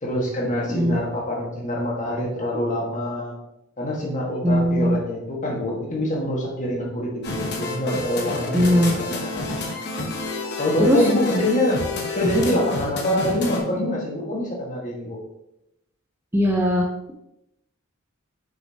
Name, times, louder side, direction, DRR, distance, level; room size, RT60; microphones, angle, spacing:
voice 1, 0.0-3.3 3.8-9.5 10.6-11.8 12.1-15.2, left 1 dB, 35° left, -2 dB, 1.7 m, -25 dB
voice 2, 4.4-5.0 8.5-9.0 10.9-11.0 16.3-17.1, equal, 10° right, -1 dB, 0.6 m, -19 dB
sound 1, 7.2-13.6, left 3 dB, 50° left, 1.1 m, -29 dB
6.7 x 5.7 x 2.9 m, 0.84 s
head